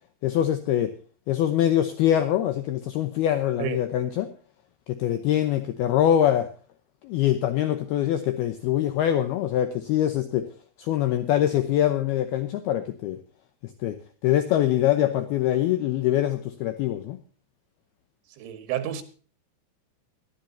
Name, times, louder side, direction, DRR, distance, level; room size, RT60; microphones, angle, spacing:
voice 1, 0.2-0.9 1.3-4.3 4.9-6.5 7.0-10.5 10.8-13.2 13.8-14.0 14.2-17.2, left 11 dB, 75° left, 9 dB, 2.4 m, -24 dB
voice 2, 18.4-19.0, right 11 dB, 75° right, 9 dB, 4.1 m, -30 dB
21.5 x 12.5 x 2.8 m, 0.39 s
omnidirectional pair, 5.5 m